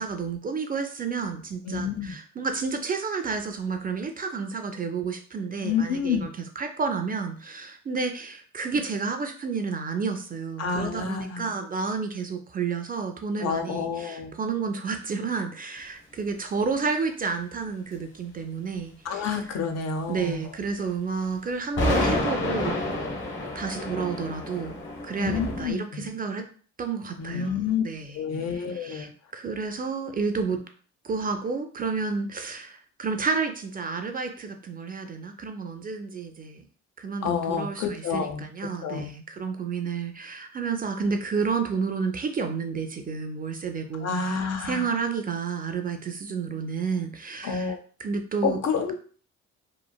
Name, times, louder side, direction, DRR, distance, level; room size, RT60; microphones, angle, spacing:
voice 1, 0.0-19.4 20.1-23.2 23.5-26.5 26.8-30.6 31.0-36.6 37.0-47.7 48.0-48.6, right 5 dB, 30° right, 5 dB, 0.4 m, -31 dB
voice 2, 1.7-2.2 5.6-6.3 10.6-11.5 13.4-14.4 19.0-20.4 25.2-26.1 27.2-27.8 28.1-29.1 37.2-38.5 38.8-39.1 44.0-44.9 47.4-47.8 48.4-48.9, left 6 dB, 60° left, 5 dB, 0.5 m, -29 dB
sound 1, 21.8-25.7, left 1 dB, 40° left, 1.0 m, -28 dB
3.0 x 2.5 x 2.2 m, 0.43 s
cardioid pair, 90°, 30 cm